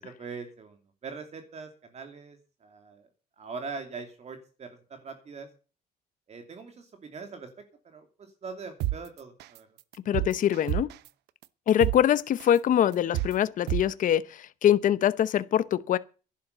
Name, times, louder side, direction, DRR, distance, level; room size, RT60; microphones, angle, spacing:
voice 1, 0.2-3.1 3.4-5.5 6.3-7.5 7.8-9.7, right 4 dB, 40° right, 2.7 m, -42 dB
sound 1, 8.8-9.0 9.4-9.6 9.9-11.1 11.4-11.5 11.8-12.0 12.4-12.6 12.9-13.3 13.7-13.8, right 15 dB, 80° right, 0.8 m, -28 dB
voice 2, 10.1-10.9 11.7-16.0, left 10 dB, 50° left, 0.8 m, -24 dB
11.5 x 11.0 x 6.7 m
cardioid pair, 110°, 17 cm